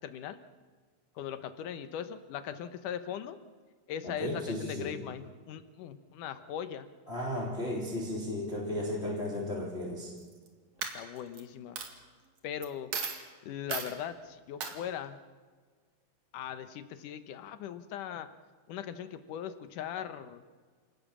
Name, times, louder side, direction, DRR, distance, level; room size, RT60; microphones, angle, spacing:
voice 1, 0.0-0.4 1.2-3.4 3.9-6.9 10.9-11.8 12.4-12.9 13.4-15.2 16.3-18.3 18.7-20.4, left 9 dB, 70° left, 11 dB, 2.4 m, -39 dB
voice 2, 4.0-4.9 7.1-10.1, left 1 dB, 15° left, -2 dB, 3.4 m, -34 dB
Coin (dropping), 10.2-10.5 10.8-11.4 11.8-11.9 12.6-12.7 12.9-13.2 13.7-13.9 14.6-14.7, right 6 dB, 55° right, 3.2 m, -35 dB
28.5 x 18.5 x 7.4 m, 1.5 s
omnidirectional pair, 4.2 m